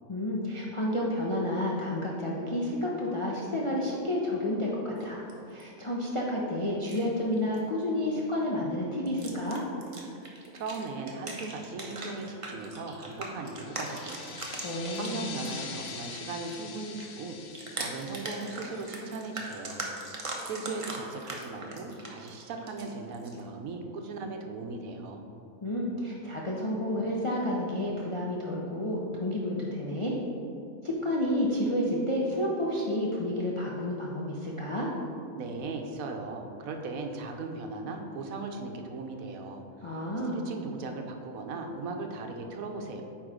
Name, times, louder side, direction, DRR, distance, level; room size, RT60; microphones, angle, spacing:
voice 1, 0.1-9.6 14.6-15.2 25.6-30.2 30.8-34.9 39.8-40.4, left 1 dB, 45° left, -4 dB, 0.4 m, -30 dB
sound 1, 5.0-5.6 6.7-7.1 7.4-7.6 8.0-8.2 9.1-16.0 16.3-23.4, right 2 dB, 35° right, 0.5 m, -40 dB
voice 2, 10.2-17.4 17.7-19.9 20.4-25.3 35.4-43.0, right 3 dB, 70° right, 4 dB, 1.1 m, -38 dB
sound 2, 13.5-19.8, left 6 dB, 85° left, 1.2 m, -44 dB
8.7 x 3.1 x 4.9 m, 2.6 s
omnidirectional pair, 1.5 m